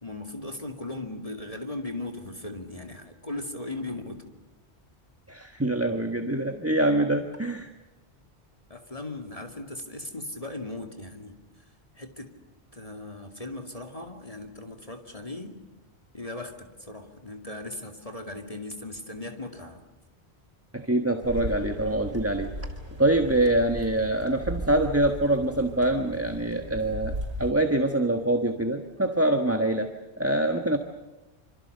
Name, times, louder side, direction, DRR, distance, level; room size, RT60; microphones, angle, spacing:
voice 1, 0.0-4.2 8.7-11.6 12.0-12.3 12.7-15.6 16.1-19.8, left 2 dB, 30° left, 4 dB, 2.4 m, -38 dB
voice 2, 5.3-7.7 20.7-22.5 23.0-29.9 30.2-30.8, right 1 dB, 15° right, 5 dB, 1.4 m, -25 dB
sound 1, 21.2-27.5, right 1 dB, 70° right, 6.3 m, -37 dB
27.0 x 26.5 x 6.7 m, 1.1 s
omnidirectional pair, 1.1 m